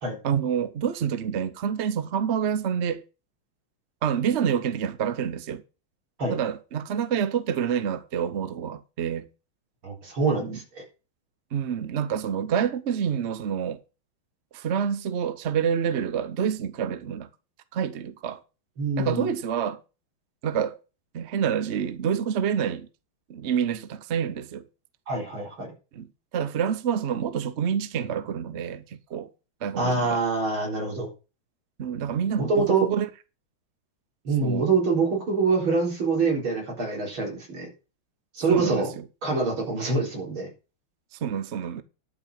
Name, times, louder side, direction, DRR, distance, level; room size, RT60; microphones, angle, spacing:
voice 1, 0.2-3.0 4.0-5.6 6.3-9.3 10.4-10.6 11.5-13.8 14.5-17.3 17.7-18.4 19.0-19.8 20.4-20.8 21.1-22.9 23.3-24.6 25.9-29.3 29.6-30.2 31.8-33.1 34.4-34.7 38.5-39.0 41.1-41.8, right 8 dB, 55° right, 0.7 m, -27 dB
voice 2, 9.8-10.8 18.8-19.3 25.1-25.7 29.8-31.1 32.4-32.9 34.2-37.7 38.3-38.9 39.2-40.5, right 4 dB, 75° right, 5.0 m, -25 dB
11.0 x 6.0 x 6.6 m
omnidirectional pair, 2.3 m